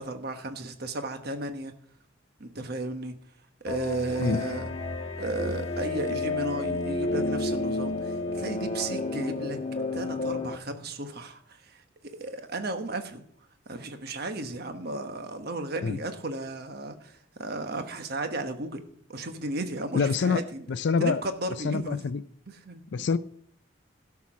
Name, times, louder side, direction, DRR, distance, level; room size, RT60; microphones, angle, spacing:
voice 1, 0.0-1.7 2.4-3.2 3.6-4.7 5.2-9.6 9.9-13.2 13.7-18.8 19.1-20.7 21.0-22.0 22.5-23.1, right 2 dB, 55° right, 7 dB, 1.2 m, -34 dB
sound 1, 3.7-10.6, left 2 dB, 35° left, 1.1 m, -31 dB
voice 2, 19.9-20.4 20.7-21.2 21.6-22.2 22.9-23.2, left 5 dB, 60° left, 13 dB, 0.4 m, -25 dB
12.5 x 5.9 x 6.1 m, 0.63 s
head